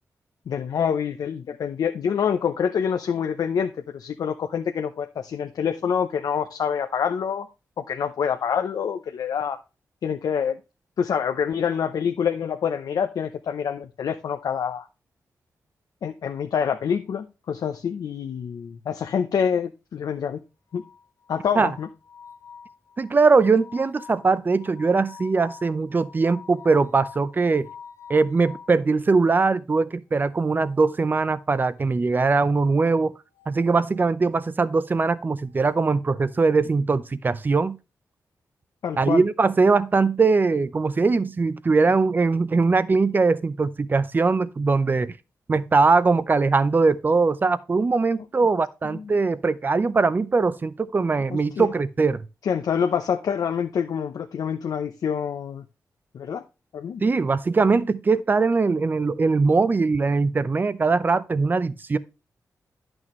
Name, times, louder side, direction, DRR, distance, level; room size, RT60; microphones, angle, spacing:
voice 1, 0.5-7.5 7.8-9.6 10.0-10.6 11.0-14.9 16.0-20.4 20.7-20.8 21.3-21.9 38.8-39.2 48.9-49.1 51.3-51.7 52.4-55.6 56.1-56.4 56.7-57.0, left 7 dB, 80° left, 0.7 m, -26 dB
sound 1, 20.7-28.8 30.1-31.3 32.1-34.1 35.3-36.6, left 6 dB, 65° left, 2.2 m, -47 dB
voice 2, 23.0-27.7 28.1-33.1 33.5-37.8 39.0-45.1 45.5-52.2 57.0-62.0, right 4 dB, 30° right, 0.6 m, -21 dB
11.0 x 6.2 x 3.1 m
wide cardioid pair, 135°, 6 cm